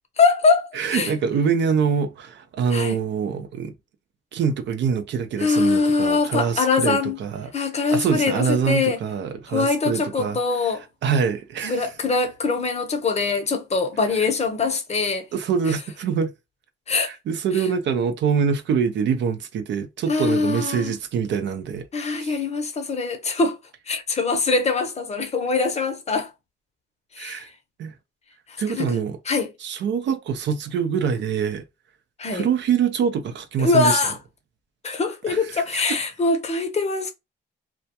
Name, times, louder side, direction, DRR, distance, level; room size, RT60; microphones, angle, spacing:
voice 1, 0.2-1.1 2.7-3.0 5.4-7.2 7.5-9.0 9.5-10.8 11.6-15.3 16.9-17.1 20.1-20.9 21.9-23.6 23.9-26.3 27.1-27.4 28.5-29.0 29.3-29.5 32.2-32.5 33.6-34.2 34.8-37.1, left 4 dB, 35° left, 0.7 m, -23 dB
voice 2, 0.7-3.7 4.3-7.5 7.9-10.4 10.6-10.7 11.0-11.9 15.3-16.3 17.0-21.8 22.1-22.3 27.2-27.5 27.8-27.9 28.6-29.2 29.6-31.6 32.3-34.0 35.3-35.6, right 6 dB, 65° right, 0.5 m, -24 dB
2.2 x 2.2 x 2.7 m
cardioid pair, 90°, 20 cm